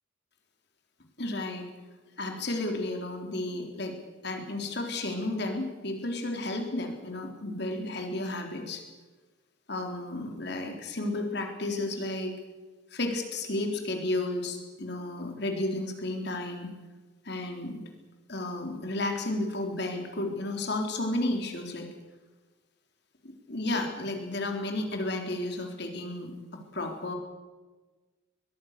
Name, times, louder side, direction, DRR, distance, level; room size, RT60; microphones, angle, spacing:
voice 1, 1.2-1.7 2.2-3.9 4.2-8.8 9.7-12.3 12.9-16.7 17.2-17.8 18.3-21.9 23.2-27.1, left 2 dB, 60° left, 3 dB, 3.9 m, -32 dB
23.5 x 21.5 x 6.8 m, 1.3 s
head